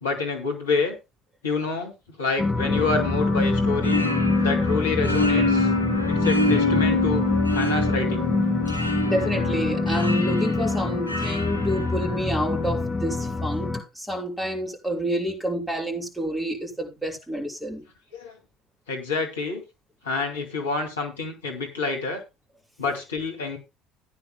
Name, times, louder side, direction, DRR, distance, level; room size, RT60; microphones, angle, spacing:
voice 1, 0.0-1.0 1.4-4.0 4.4-5.7 6.1-7.2 7.5-8.2 18.1-18.4 18.9-19.6 20.0-22.2 22.8-23.6, left 4 dB, 75° left, 2.5 m, -27 dB
sound 1, 2.4-13.8, left 3 dB, 20° left, 2.7 m, -25 dB
sound 2, 2.7-12.5, left 2 dB, 90° right, 2.0 m, -28 dB
voice 2, 9.0-17.8, equal, 5° right, 5.4 m, -29 dB
16.5 x 9.8 x 2.2 m
figure-of-eight pair, 60°, 0 cm